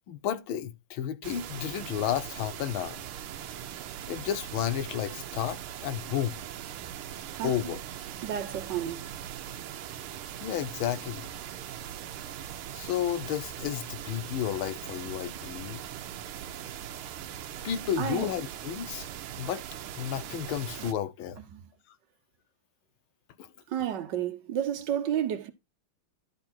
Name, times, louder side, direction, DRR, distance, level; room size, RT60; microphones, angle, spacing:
voice 1, 0.0-3.0 4.1-6.4 7.4-7.8 10.4-11.3 12.7-15.8 17.6-19.1 19.4-19.6 20.0-21.4 23.4-23.5, left 10 dB, 80° left, 1.5 m, -32 dB
sound 1, 1.2-20.9, right 10 dB, 90° right, 1.7 m, -40 dB
voice 2, 8.2-9.1 18.0-18.3 21.5-21.6 23.7-25.5, right 10 dB, 65° right, 1.3 m, -31 dB
11.5 x 4.0 x 4.2 m
omnidirectional pair, 2.3 m